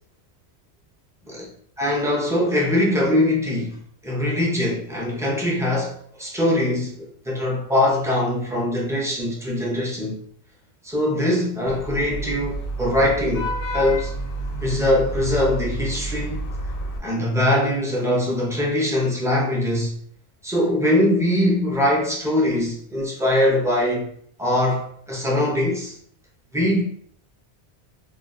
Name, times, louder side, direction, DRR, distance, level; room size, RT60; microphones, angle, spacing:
voice 1, 1.8-10.2 10.8-14.1 14.6-16.4 17.0-19.9 20.4-24.1 24.4-26.0 26.5-26.8, left 1 dB, 5° right, 0.4 m, -22 dB
Vehicle horn car horn honking / Traffic noise roadway noise, 11.7-17.0, right 1 dB, 65° left, 0.7 m, -30 dB
2.3 x 2.2 x 3.7 m
omnidirectional pair, 1.1 m